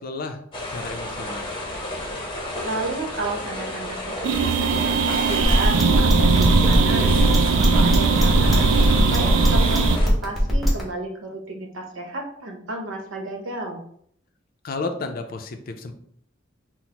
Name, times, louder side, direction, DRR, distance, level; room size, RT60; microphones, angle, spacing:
voice 1, 0.0-0.4 0.7-1.5 14.6-15.9, left 3 dB, 45° left, 6 dB, 0.4 m, -32 dB
sound 1, 0.5-10.1, left 1 dB, 25° left, 0.8 m, -32 dB
voice 2, 2.6-7.2 7.6-8.6 9.1-13.8, right 2 dB, 85° right, 2 dB, 0.8 m, -32 dB
sound 2, 4.2-10.0, right 4 dB, 65° right, 0.3 m, -20 dB
sound 3, 5.4-10.8, equal, ahead, 1.0 m, -22 dB
5.9 x 2.0 x 2.8 m, 0.65 s
head